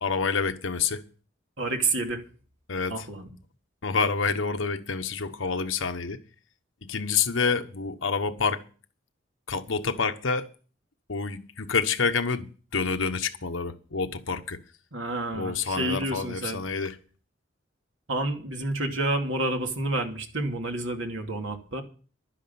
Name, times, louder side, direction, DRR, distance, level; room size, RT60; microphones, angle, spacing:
voice 1, 0.0-1.0 2.7-3.0 3.8-6.2 6.9-8.6 9.5-10.5 11.1-14.6 15.3-17.0, left 5 dB, 80° left, 1.2 m, -28 dB
voice 2, 1.6-2.2 2.9-3.3 14.9-16.6 18.1-21.8, right 2 dB, 80° right, 2.7 m, -29 dB
12.0 x 10.0 x 7.1 m
head